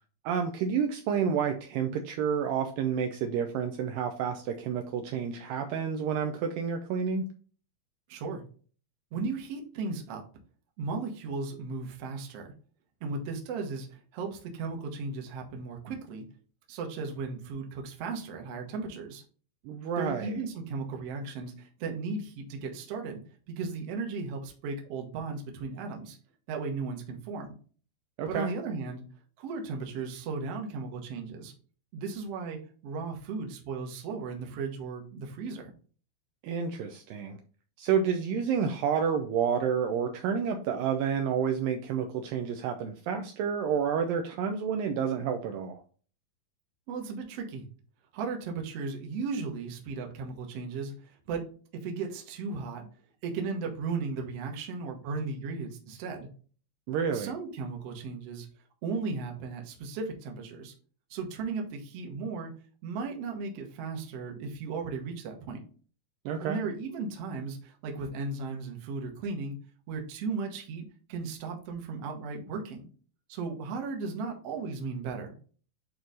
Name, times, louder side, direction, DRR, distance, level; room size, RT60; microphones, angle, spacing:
voice 1, 0.2-7.2 19.6-20.4 28.2-28.5 36.4-37.4 37.8-45.8 56.9-57.3 66.3-66.6, right 7 dB, 80° right, 5 dB, 2.1 m, -29 dB
voice 2, 8.1-8.4 9.1-10.2 10.8-12.5 13.0-16.2 16.7-19.2 20.0-23.2 23.5-26.2 26.5-27.5 28.3-29.0 29.4-31.5 31.9-35.7 46.9-47.6 48.1-51.4 51.7-52.9 53.2-56.3 57.1-58.5 58.8-60.7 61.1-62.5 62.8-65.6 66.4-69.6 69.9-72.9 73.3-75.3, right 4 dB, 65° right, 2 dB, 1.6 m, -36 dB
8.7 x 3.1 x 3.9 m, 0.41 s
omnidirectional pair, 4.4 m